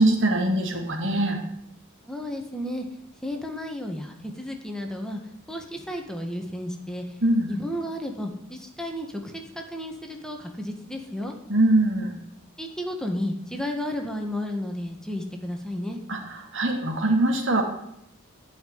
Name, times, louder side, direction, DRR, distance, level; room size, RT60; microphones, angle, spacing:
voice 1, 0.0-1.4 7.2-7.5 11.5-12.2 16.1-17.6, right 1 dB, 55° right, 2 dB, 2.5 m, -22 dB
voice 2, 2.0-2.8 3.2-5.2 5.5-7.0 7.5-11.3 12.6-16.0, left 1 dB, 5° left, 3 dB, 1.5 m, -32 dB
15.5 x 5.8 x 9.5 m, 0.78 s
head